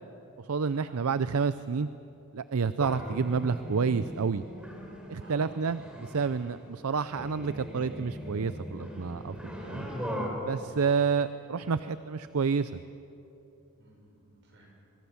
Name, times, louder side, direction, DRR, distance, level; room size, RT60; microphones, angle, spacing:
voice 1, 0.5-1.9 2.3-4.4 5.1-9.3 9.6-9.9 10.4-12.8, right 5 dB, 75° right, 13 dB, 0.5 m, -29 dB
sound 1, 2.8-10.3, equal, 5° right, 3.8 m, -39 dB
voice 2, 5.1-5.7 10.7-10.9 13.8-14.7, right 1 dB, 55° right, 0 dB, 6.9 m, -56 dB
24.5 x 22.0 x 7.2 m, 2.9 s
head